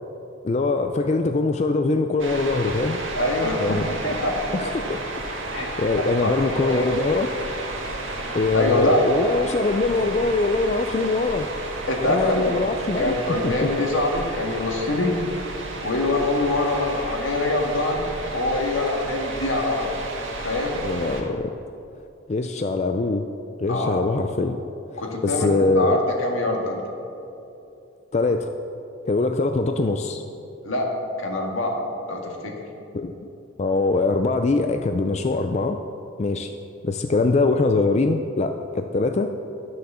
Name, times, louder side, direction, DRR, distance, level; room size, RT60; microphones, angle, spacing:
voice 1, 0.4-3.0 3.6-3.9 4.5-5.0 5.8-7.3 8.3-11.5 12.1-13.5 20.8-21.5 22.3-23.2 23.6-24.6 24.9-26.0 28.1-28.5 29.1-30.2 32.9-33.3 33.6-35.8 36.2-36.5 36.8-39.3, left 3 dB, 35° left, 6 dB, 0.4 m, -23 dB
sound 1, 2.2-21.2, right 2 dB, 75° right, 1.7 m, -32 dB
voice 2, 3.1-4.4 5.5-5.7 6.0-6.3 6.6-6.9 8.5-9.0 11.9-12.4 13.0-15.2 15.8-19.9 20.4-20.8 23.7-24.0 25.0-26.8 30.7-30.9 31.2-31.8 32.1-32.5, left 2 dB, 85° left, 1 dB, 1.8 m, -24 dB
12.0 x 6.4 x 6.9 m, 2.8 s
head